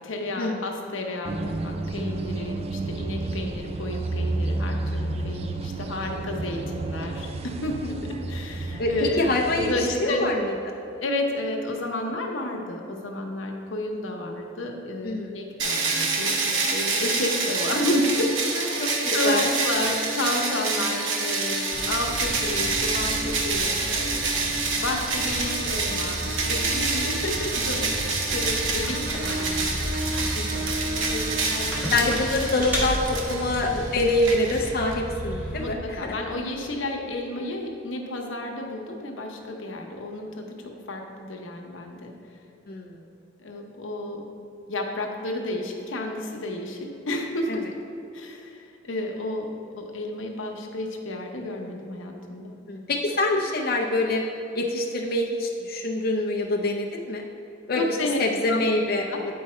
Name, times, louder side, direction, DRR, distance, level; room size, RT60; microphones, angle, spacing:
voice 1, 0.0-9.3 9.6-10.2 11.0-16.3 16.6-18.3 19.1-24.2 24.8-32.0 33.1-33.5 35.6-42.1 43.4-44.3 44.7-47.7 48.1-49.5 49.8-52.5 57.8-58.6 59.1-59.2, left 1 dB, 85° left, 2 dB, 0.9 m, -31 dB
sound 1, 1.2-9.7, right 2 dB, 30° right, 0.3 m, -31 dB
voice 2, 8.8-9.7 10.0-10.4 10.7-10.8 15.0-15.4 18.8-19.5 24.3-24.4 30.3-30.7 31.9-35.8 36.0-36.1 42.7-42.9 47.5-47.6 52.7-54.2 54.5-57.2 57.7-59.1, left 2 dB, 50° left, 0 dB, 0.5 m, -25 dB
sound 2, 15.6-34.9, right 3 dB, 85° right, 0.9 m, -27 dB
sound 3, 21.7-35.7, equal, 10° right, 1.3 m, -34 dB
8.5 x 4.7 x 4.3 m, 2.8 s
head